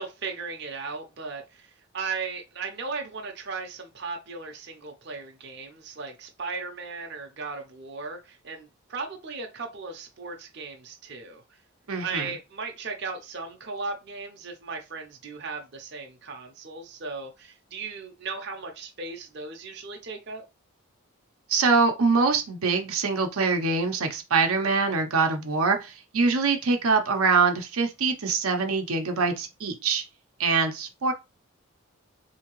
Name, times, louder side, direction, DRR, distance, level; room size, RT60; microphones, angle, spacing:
voice 1, 0.0-11.6 12.0-20.4, right 4 dB, 50° right, 0.6 m, -37 dB
voice 2, 11.9-12.3 21.5-30.0 30.4-31.1, right 4 dB, 85° right, 0.7 m, -24 dB
3.6 x 2.8 x 3.0 m
head